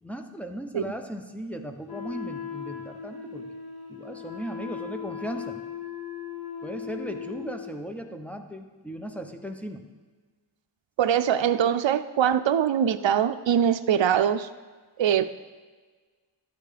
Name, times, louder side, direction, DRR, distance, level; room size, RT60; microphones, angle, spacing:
voice 1, 0.0-3.5 3.9-5.6 6.6-9.8, equal, 5° left, 4 dB, 1.0 m, -37 dB
Wind instrument woodwind instrument, 1.9-7.8, left 8 dB, 50° left, 1.5 m, -38 dB
voice 2, 11.0-14.5 15.0-15.3, right 9 dB, 75° right, 10 dB, 0.5 m, -22 dB
12.5 x 9.1 x 5.0 m, 1.4 s
wide cardioid pair, 40°, 46 cm